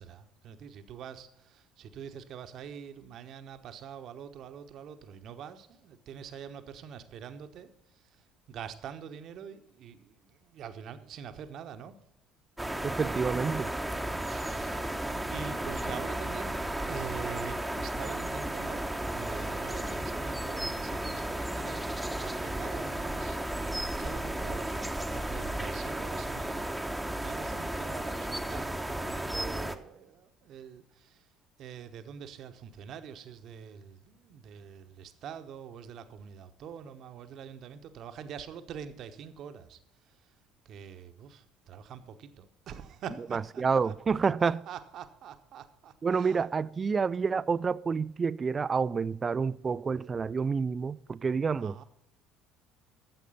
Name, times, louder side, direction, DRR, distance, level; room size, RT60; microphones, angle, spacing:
voice 1, 0.0-12.0 14.1-14.9 15.3-26.8 27.1-31.3 31.6-40.3 40.6-43.9 44.4-46.4 51.6-51.8, right 8 dB, 50° right, 1.1 m, -45 dB
sound 1, 12.6-29.8, right 1 dB, 5° right, 1.1 m, -34 dB
voice 2, 12.8-13.7 43.3-44.6 46.0-51.8, right 5 dB, 30° right, 0.4 m, -29 dB
13.5 x 7.8 x 5.5 m
figure-of-eight pair, 55°, 0 cm